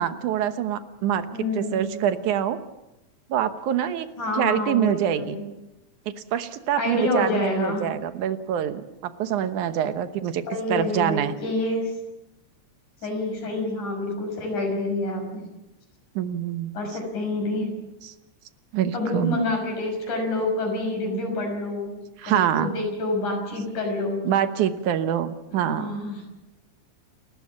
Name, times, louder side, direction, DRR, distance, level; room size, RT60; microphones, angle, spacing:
voice 1, 0.0-1.3 1.5-2.6 3.3-4.1 4.3-5.4 6.3-10.4 10.7-11.3 16.2-16.7 18.0-18.1 18.7-19.4 22.2-22.7 24.2-26.0, right 10 dB, 75° right, 10 dB, 2.6 m, -25 dB
voice 2, 1.3-2.1 4.2-5.5 6.8-7.8 10.5-11.9 13.0-15.4 16.7-17.7 18.9-22.0 22.3-24.2 25.5-26.2, left 2 dB, 75° left, 2 dB, 7.5 m, -27 dB
29.5 x 14.5 x 7.5 m, 0.96 s
omnidirectional pair, 3.6 m